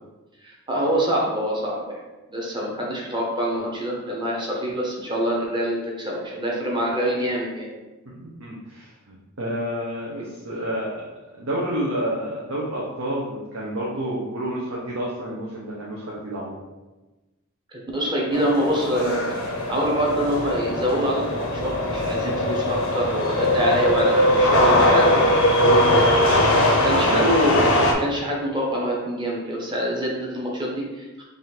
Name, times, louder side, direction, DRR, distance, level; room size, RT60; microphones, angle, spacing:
voice 1, 0.4-1.9 2.3-7.7 10.1-10.3 17.7-25.3 25.6-26.1 26.8-31.2, equal, 20° right, -3 dB, 0.9 m, -25 dB
voice 2, 8.2-11.0 11.4-16.6 27.0-27.2, equal, 65° right, -5 dB, 0.8 m, -29 dB
sound 1, 18.3-27.9, left 1 dB, 70° left, 0.7 m, -20 dB
3.7 x 2.5 x 4.1 m, 1.1 s
head